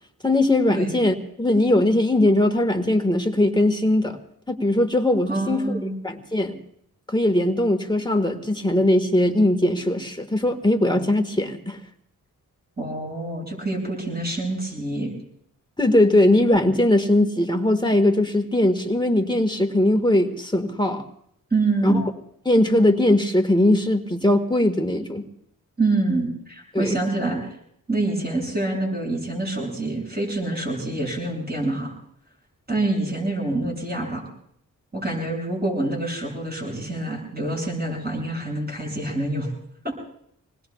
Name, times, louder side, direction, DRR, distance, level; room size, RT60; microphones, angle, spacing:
voice 1, 0.2-4.2 4.5-5.7 6.0-6.6 7.1-11.8 15.8-21.0 21.8-22.0 22.4-25.2 26.7-27.0, left 1 dB, 15° left, 4 dB, 1.6 m, -20 dB
voice 2, 5.3-6.0 12.8-15.1 21.5-22.0 25.8-27.4 27.9-31.9 32.7-34.3 34.9-39.5 39.8-39.9, right 2 dB, 30° right, -1 dB, 7.0 m, -26 dB
26.5 x 19.5 x 2.4 m, 0.69 s
cardioid pair, 75°, 34 cm